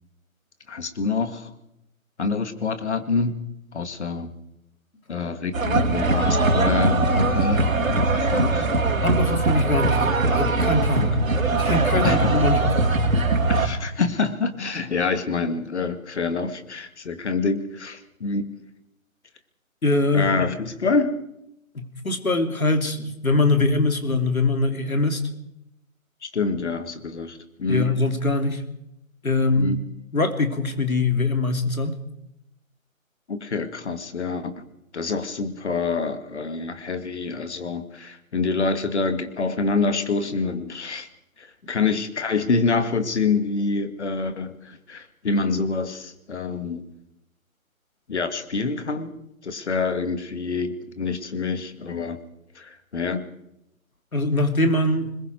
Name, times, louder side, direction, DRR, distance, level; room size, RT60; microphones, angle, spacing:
voice 1, 0.7-1.5 2.2-3.3 3.7-4.3 5.1-8.7 11.0-11.3 11.9-12.6 13.5-18.5 20.1-21.2 26.2-27.9 29.6-29.8 33.3-34.6 34.9-41.1 41.4-46.8 48.1-49.1 49.4-52.2 52.6-53.3, left 4 dB, 55° left, 9 dB, 2.3 m, -26 dB
sound 1, 5.5-13.7, right 3 dB, 70° right, 3.6 m, -21 dB
voice 2, 9.0-10.1 10.4-11.1 11.6-12.7 19.8-20.3 21.7-25.2 27.7-28.6 29.2-29.7 30.1-32.0 54.1-55.1, left 2 dB, 80° left, 7 dB, 3.0 m, -22 dB
26.5 x 21.5 x 4.7 m, 0.84 s
figure-of-eight pair, 150°, 41 cm